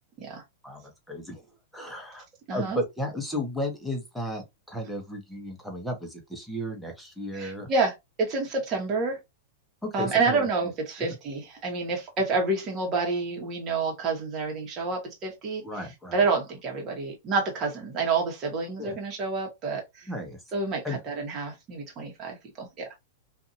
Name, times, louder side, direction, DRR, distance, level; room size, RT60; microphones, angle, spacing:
voice 1, 0.6-1.5 1.7-2.2 2.5-7.7 9.8-10.5 11.0-11.2 15.6-16.2 18.8-18.9 20.1-20.4 20.8-21.0, equal, ahead, 1.0 m, -34 dB
voice 2, 7.3-9.2 9.9-15.6 16.1-20.1 20.5-22.9, right 4 dB, 30° right, 1.3 m, -28 dB
2.7 x 2.6 x 2.5 m
hypercardioid pair, 140°, 0 cm